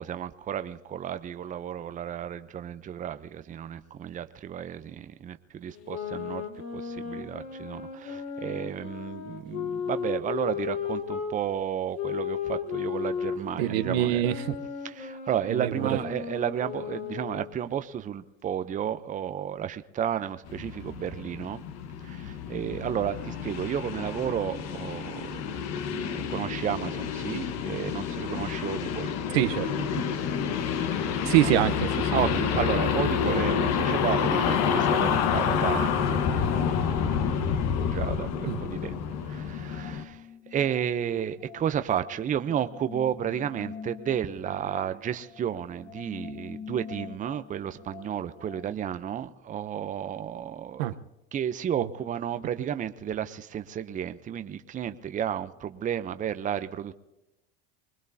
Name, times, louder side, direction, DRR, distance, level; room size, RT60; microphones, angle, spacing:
voice 1, 0.0-6.5 6.7-14.2 14.8-21.6 22.0-29.1 30.7-30.9 31.4-31.5 32.1-36.7 37.2-39.0 39.2-50.8 51.3-56.9, right 9 dB, 25° right, 11 dB, 0.7 m, -32 dB
sound 1, 5.7-11.4 11.9-17.5, left 7 dB, 75° left, 2.3 m, -35 dB
voice 2, 13.6-14.5 15.5-15.9 29.3-29.7 31.2-32.3 38.5-38.6 50.8-50.9, right 13 dB, 80° right, 9 dB, 1.0 m, -25 dB
sound 2, 20.4-40.0, left 7 dB, 60° left, 1.4 m, -28 dB
sound 3, 39.5-48.7, left 5 dB, 25° left, 1.7 m, -45 dB
24.5 x 20.0 x 2.8 m, 0.94 s
supercardioid pair, 110°, 30 cm